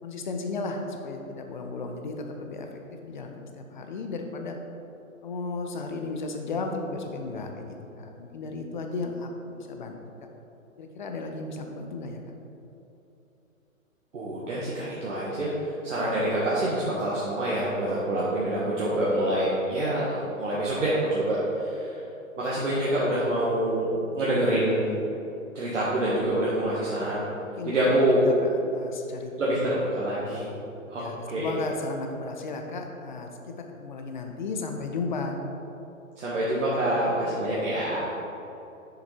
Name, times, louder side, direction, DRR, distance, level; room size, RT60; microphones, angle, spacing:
voice 1, 0.0-4.6 5.2-10.0 10.8-12.2 27.6-27.7 28.2-29.7 30.9-35.4, left 3 dB, 35° left, 4 dB, 0.7 m, -35 dB
voice 2, 14.1-22.0 22.4-25.0 25.6-27.2 27.7-28.3 29.4-30.5 30.9-31.5 36.2-38.0, right 1 dB, 60° right, -7 dB, 1.7 m, -26 dB
6.8 x 6.7 x 4.4 m, 2.9 s
figure-of-eight pair, 125°, 41 cm